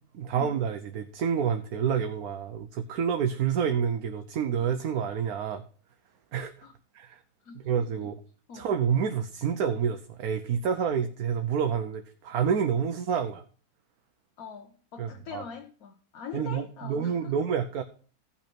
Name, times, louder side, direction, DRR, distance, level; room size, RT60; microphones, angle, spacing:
voice 1, 0.1-5.6 6.3-6.5 6.9-7.2 7.6-8.2 8.5-13.4 15.0-15.4 16.3-17.8, right 7 dB, 80° right, 1.3 m, -28 dB
voice 2, 14.4-17.4, left 6 dB, 75° left, 1.5 m, -43 dB
15.5 x 5.7 x 4.4 m
omnidirectional pair, 1.5 m